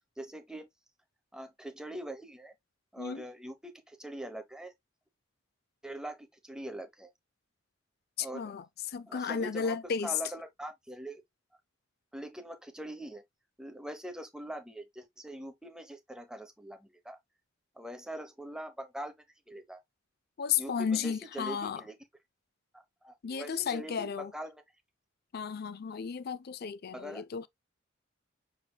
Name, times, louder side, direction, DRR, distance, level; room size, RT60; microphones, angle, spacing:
voice 1, 0.2-0.7 1.3-2.5 2.9-4.7 5.8-7.1 8.2-8.5 9.1-11.2 12.1-13.2 13.6-17.2 17.7-19.2 19.5-19.8 20.6-22.0 22.7-24.6 26.9-27.2, right 1 dB, 5° right, 0.8 m, -43 dB
voice 2, 8.2-10.1 20.4-21.8 23.2-24.3 25.3-27.5, left 6 dB, 50° left, 0.5 m, -33 dB
6.0 x 3.6 x 2.2 m
head